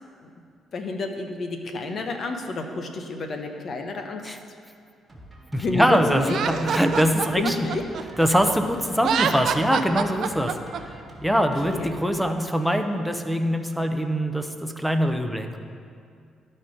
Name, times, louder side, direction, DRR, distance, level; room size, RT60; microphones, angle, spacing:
voice 1, 0.7-4.3 5.5-6.4 7.3-7.8 11.7-11.9, left 2 dB, 50° left, 5 dB, 0.9 m, -29 dB
Drum kit, 5.1-12.9, right 1 dB, 25° right, 1.6 m, -46 dB
voice 2, 5.5-7.6 8.2-10.6 11.2-15.6, equal, ahead, 6 dB, 0.7 m, -23 dB
Laughter, 6.2-8.5 8.9-10.8, right 7 dB, 65° right, 0.4 m, -26 dB
12.0 x 4.4 x 4.9 m, 2.3 s
cardioid pair, 90°, 0 cm